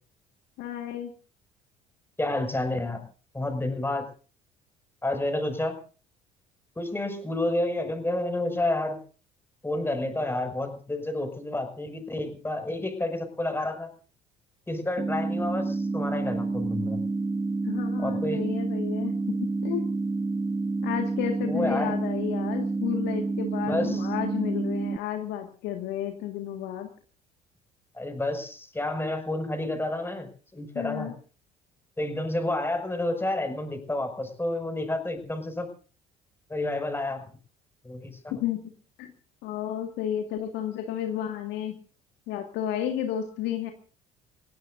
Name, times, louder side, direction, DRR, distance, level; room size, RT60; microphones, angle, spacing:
voice 1, 0.6-1.1 17.6-19.2 19.4-19.9 20.8-26.9 30.7-31.1 38.4-38.6 39.0-39.1 39.4-41.7 42.3-43.7, left 10 dB, 65° left, 5 dB, 1.9 m, -32 dB
voice 2, 2.2-3.0 3.3-4.1 5.0-5.8 6.8-9.0 9.6-13.9 14.7-17.0 18.0-18.4 21.4-21.9 23.6-24.1 27.9-31.1 32.0-35.7 36.5-37.3 37.8-38.3, left 1 dB, 10° left, 5 dB, 6.1 m, -30 dB
sound 1, 15.0-25.0, right 3 dB, 20° right, 0.8 m, -29 dB
29.5 x 17.5 x 2.7 m, 0.39 s
hypercardioid pair, 55°, 19 cm